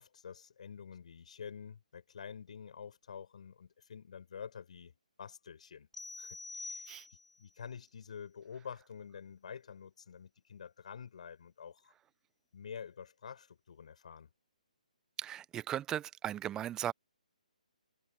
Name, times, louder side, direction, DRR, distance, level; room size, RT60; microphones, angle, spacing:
voice 1, 0.0-5.9 6.2-11.9 12.5-14.3, left 7 dB, 55° left, 6.6 m, -48 dB
sound 1, 5.9-7.5, left 3 dB, 5° left, 7.1 m, -46 dB
voice 2, 15.2-16.9, right 11 dB, 15° right, 0.8 m, -37 dB
figure-of-eight pair, 135°, 4 cm